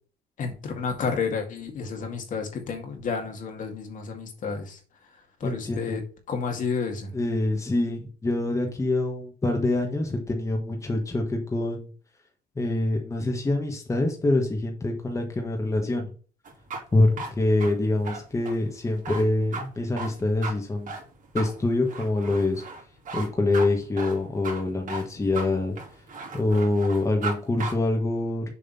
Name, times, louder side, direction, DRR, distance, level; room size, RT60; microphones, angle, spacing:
voice 1, 0.4-4.8 5.4-6.0 6.3-7.1, left 5 dB, 50° left, 4 dB, 2.1 m, -31 dB
voice 2, 5.4-6.0 7.1-11.9 12.6-16.1 16.9-20.9 21.3-22.6 23.1-25.7 26.3-28.5, left 2 dB, 20° left, 2 dB, 1.5 m, -25 dB
sound 1, 16.4-27.3 27.6-27.7, right 3 dB, 50° right, 2.6 m, -36 dB
7.0 x 3.5 x 5.7 m, 0.38 s
cardioid pair, 110°, 17 cm